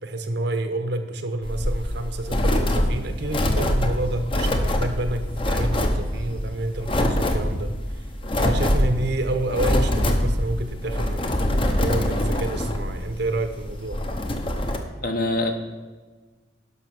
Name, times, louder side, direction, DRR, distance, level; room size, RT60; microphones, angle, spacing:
voice 1, 0.0-8.0 8.4-14.0, right 2 dB, 55° right, 7 dB, 1.0 m, -29 dB
sound 1, 1.4-14.8, left 1 dB, 25° left, 0.8 m, -24 dB
voice 2, 15.0-15.5, left 2 dB, 45° left, 5 dB, 1.1 m, -25 dB
11.0 x 6.1 x 6.1 m, 1.4 s
head